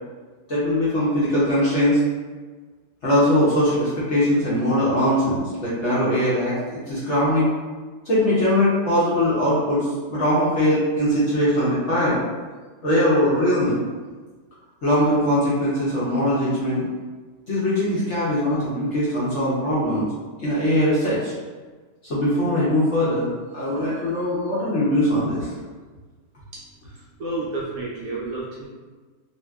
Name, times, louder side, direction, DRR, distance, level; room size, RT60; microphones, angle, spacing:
voice 1, 0.5-2.0 3.0-7.6 8.0-12.2 12.8-13.8 14.8-16.9 17.5-20.1 20.4-21.3 22.1-25.5, left 1 dB, 55° left, -9 dB, 0.9 m, -21 dB
voice 2, 26.5-28.7, right 2 dB, 70° right, -6 dB, 0.9 m, -31 dB
2.7 x 2.7 x 2.2 m, 1.4 s
omnidirectional pair, 1.8 m